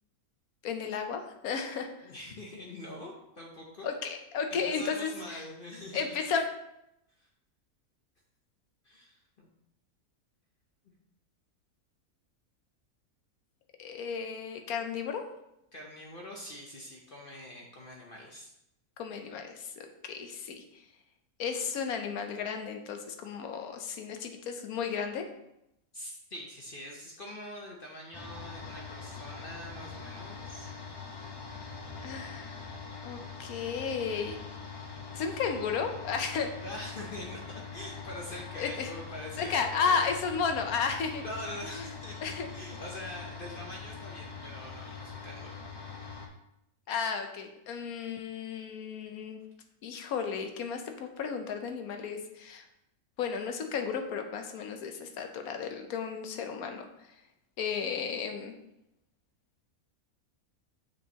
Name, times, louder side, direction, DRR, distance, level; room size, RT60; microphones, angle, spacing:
voice 1, 0.6-1.9 3.8-5.4 5.9-6.4 13.8-15.3 19.0-20.6 21.4-25.3 32.0-32.6 33.0-34.4 35.1-36.6 38.6-38.9 39.4-41.2 42.2-42.5 46.9-49.4 49.8-52.6 53.2-56.9 57.6-58.5, left 6 dB, 80° left, 6 dB, 1.2 m, -33 dB
voice 2, 2.0-3.9 4.5-6.1 7.2-7.3 8.8-9.5 15.7-18.5 25.9-30.7 36.6-40.1 41.1-45.5, left 1 dB, 45° left, -1 dB, 0.9 m, -44 dB
sound 1, 28.1-46.3, left 5 dB, 30° left, 0.5 m, -43 dB
6.6 x 6.4 x 2.9 m, 0.84 s
omnidirectional pair, 1.6 m